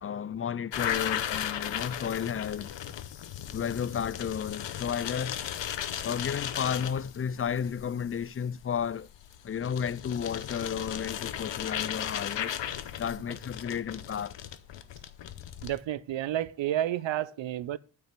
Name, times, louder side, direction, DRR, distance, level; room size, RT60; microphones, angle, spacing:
voice 1, 0.0-2.7 3.5-5.4 6.0-9.1 9.4-12.6 13.0-14.4, left 7 dB, 35° left, 0.4 m, -32 dB
sound 1, 0.7-15.8, left 10 dB, 75° left, 0.9 m, -36 dB
voice 2, 15.6-17.8, right 12 dB, 85° right, 0.7 m, -30 dB
9.1 x 5.9 x 6.6 m
cardioid pair, 75°, 44 cm